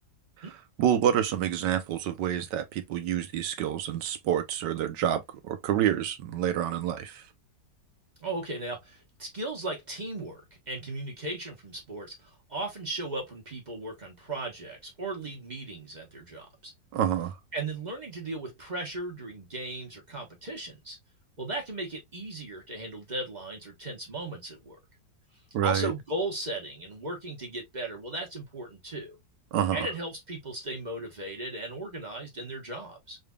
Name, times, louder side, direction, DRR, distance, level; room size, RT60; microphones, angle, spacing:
voice 1, 0.8-7.2 16.9-17.4 25.5-25.9 29.5-29.9, right 10 dB, 85° right, 1.4 m, -28 dB
voice 2, 8.2-16.7 17.5-21.0 21.4-24.8 25.6-29.1 29.7-33.2, right 2 dB, 30° right, 1.1 m, -36 dB
3.9 x 3.3 x 2.2 m
omnidirectional pair, 1.8 m